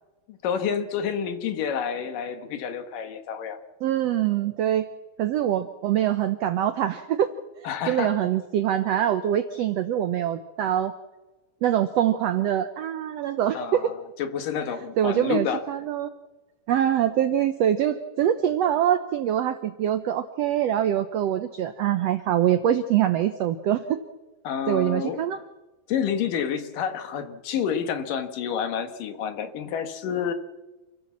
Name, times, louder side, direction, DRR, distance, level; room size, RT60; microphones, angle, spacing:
voice 1, 0.3-3.6 7.6-8.2 13.5-15.6 24.4-25.2 25.9-30.3, left 7 dB, 80° left, 8 dB, 3.2 m, -29 dB
voice 2, 3.8-4.9 5.2-7.3 7.9-10.9 11.6-13.9 15.0-16.1 16.7-24.0 24.7-25.4, right 10 dB, 70° right, 10 dB, 1.6 m, -24 dB
28.0 x 16.0 x 7.3 m, 1.1 s
omnidirectional pair, 3.8 m